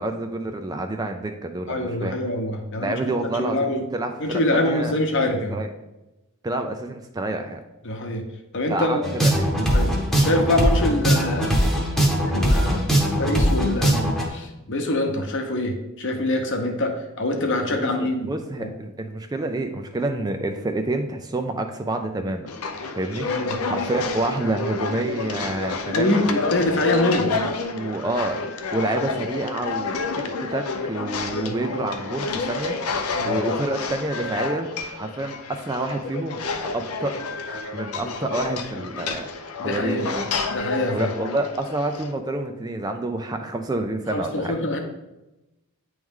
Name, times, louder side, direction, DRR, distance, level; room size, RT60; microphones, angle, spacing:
voice 1, 0.0-2.2 2.8-5.0 5.5-5.7 6.4-7.6 8.7-9.5 17.7-22.5 22.9-23.3 23.6-26.3 27.2-28.4 28.7-30.0 30.4-32.7 33.3-34.7 35.0-40.4 40.9-44.6, right 2 dB, 15° right, 6 dB, 0.3 m, -28 dB
voice 2, 1.7-3.8 4.2-5.6 7.8-8.2 8.5-9.1 9.7-9.9 10.2-11.6 12.2-14.0 14.3-18.3 18.6-18.7 23.2-23.6 25.9-27.3 31.3-31.5 33.1-33.4 39.6-40.1 40.5-41.1 44.1-44.8, left 1 dB, 55° left, 3 dB, 0.9 m, -25 dB
sound 1, 9.0-14.3, equal, ahead, 0.8 m, -20 dB
sound 2, 22.5-42.1, left 4 dB, 75° left, 0.5 m, -29 dB
9.0 x 3.1 x 3.6 m, 0.99 s
head